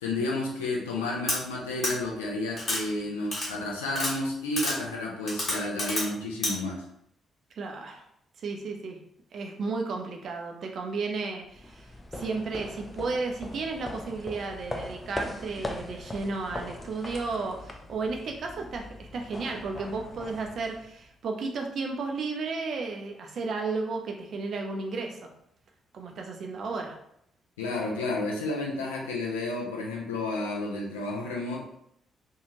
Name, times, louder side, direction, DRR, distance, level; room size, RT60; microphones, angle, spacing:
voice 1, 0.0-6.8 27.6-31.6, left 2 dB, 75° left, -2 dB, 0.5 m, -31 dB
sound 1, 1.3-1.4 1.8-1.9 2.6-2.8 3.3-3.5 3.9-4.1 4.6-4.7 5.3-6.0 6.4-6.5, left 1 dB, 45° left, 1.2 m, -28 dB
voice 2, 7.6-8.1 8.4-9.0 9.3-11.9 12.1-25.3 25.9-27.0, right 4 dB, 55° right, 2 dB, 0.5 m, -33 dB
sound 2, 11.5-21.1, left 1 dB, 20° left, 0.4 m, -40 dB
2.7 x 2.4 x 2.9 m, 0.73 s
figure-of-eight pair, 40°, 0 cm